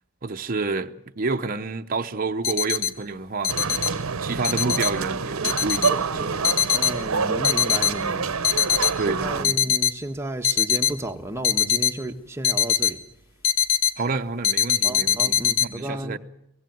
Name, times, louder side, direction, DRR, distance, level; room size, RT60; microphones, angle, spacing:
voice 1, 0.2-3.5 4.0-6.4 9.0-9.6 14.0-16.2, right 3 dB, 40° right, 0.8 m, -29 dB
sound 1, 2.4-2.9 3.4-3.9 4.4-4.9 5.4-5.9 6.4-6.9 7.4-7.9 8.4-8.9 9.4-9.9 10.4-10.9 11.4-11.9 12.4-12.9 13.4-13.9 14.4-15.6, left 9 dB, 70° left, 1.2 m, -21 dB
sound 2, 3.5-9.5, right 5 dB, 80° right, 0.9 m, -27 dB
voice 2, 5.8-8.4 9.1-13.0 14.8-16.2, right 1 dB, 10° right, 1.2 m, -33 dB
24.5 x 16.5 x 9.3 m
head